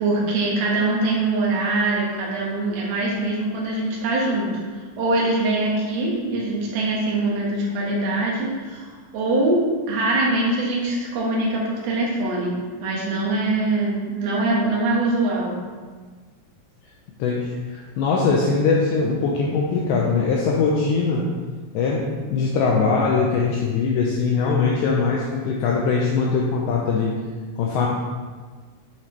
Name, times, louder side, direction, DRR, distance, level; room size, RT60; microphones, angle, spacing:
voice 1, 0.0-15.6, right 2 dB, 60° right, -4 dB, 2.8 m, -23 dB
voice 2, 17.2-21.3 21.7-27.1 27.6-27.9, left 4 dB, 90° left, -3 dB, 2.5 m, -21 dB
10.0 x 5.9 x 3.3 m, 1.5 s
omnidirectional pair, 6.0 m